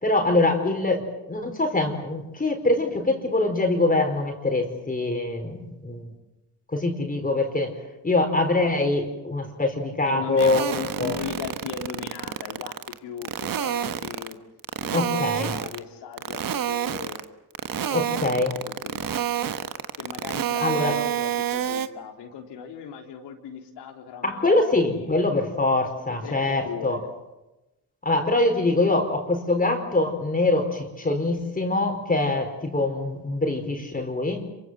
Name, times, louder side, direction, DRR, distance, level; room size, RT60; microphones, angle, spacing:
voice 1, 0.0-6.1 6.7-7.7 8.0-10.7 11.0-11.1 14.9-15.5 17.9-18.5 20.6-21.0 24.2-27.0 28.0-34.5, left 2 dB, 20° left, 3 dB, 4.5 m, -24 dB
voice 2, 10.1-14.4 14.8-17.3 17.8-19.5 20.0-25.1 26.2-26.3 26.6-27.1, left 7 dB, 80° left, 3 dB, 3.7 m, -38 dB
sound 1, 10.4-12.9 13.2-14.3 14.6-15.8 16.2-17.2 17.5-21.9, right 10 dB, 55° right, 1.5 m, -28 dB
27.0 x 24.0 x 7.7 m, 1.0 s
cardioid pair, 90°, 40 cm